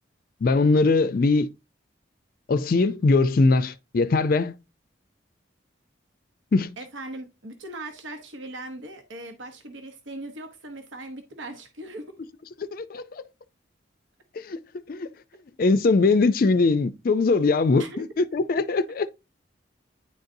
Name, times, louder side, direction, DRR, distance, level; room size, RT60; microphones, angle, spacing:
voice 1, 0.4-1.5 2.5-4.5 6.5-6.7 12.7-13.2 14.4-14.6 14.9-15.1 15.6-19.1, left 3 dB, 50° left, 0.4 m, -21 dB
voice 2, 6.8-12.1 17.8-18.0, right 2 dB, 80° right, 0.9 m, -39 dB
9.8 x 3.9 x 2.6 m
head